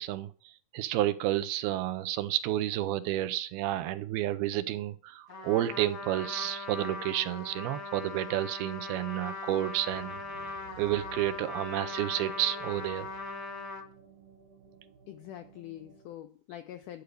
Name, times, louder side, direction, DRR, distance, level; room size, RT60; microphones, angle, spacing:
voice 1, 0.0-10.2 10.8-13.1, right 14 dB, 85° right, 2.7 m, -31 dB
Trumpet, 5.3-13.8, left 3 dB, 40° left, 1.2 m, -40 dB
sound 1, 9.9-16.1, right 6 dB, 65° right, 2.9 m, -53 dB
voice 2, 15.1-17.0, left 12 dB, 85° left, 1.8 m, -44 dB
12.0 x 5.2 x 8.3 m
omnidirectional pair, 4.5 m